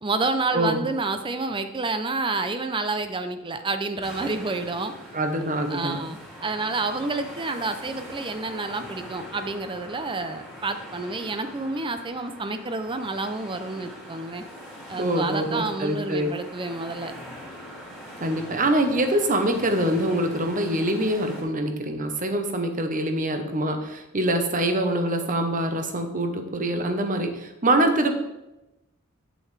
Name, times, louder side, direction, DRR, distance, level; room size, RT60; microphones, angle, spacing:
voice 1, 0.0-4.9 5.7-14.4 14.9-17.1, right 3 dB, 25° right, 9 dB, 0.6 m, -29 dB
voice 2, 0.5-0.9 5.1-6.0 15.0-16.4 18.2-28.1, right 1 dB, 40° right, 6 dB, 1.0 m, -24 dB
sound 1, 4.0-21.4, equal, ahead, 2.3 m, -42 dB
8.7 x 7.6 x 3.3 m, 0.96 s
head